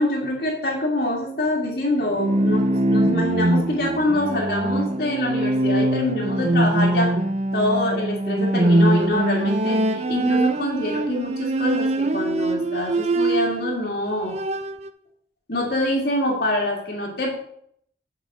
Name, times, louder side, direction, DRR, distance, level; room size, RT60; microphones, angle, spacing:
voice 1, 0.0-7.2 7.5-14.4 15.5-17.4, left 1 dB, 65° left, -2 dB, 2.2 m, -25 dB
Bowed string instrument, 2.0-13.8 14.1-14.9, right 1 dB, 35° right, 0.4 m, -22 dB
7.4 x 6.8 x 5.0 m, 0.67 s
head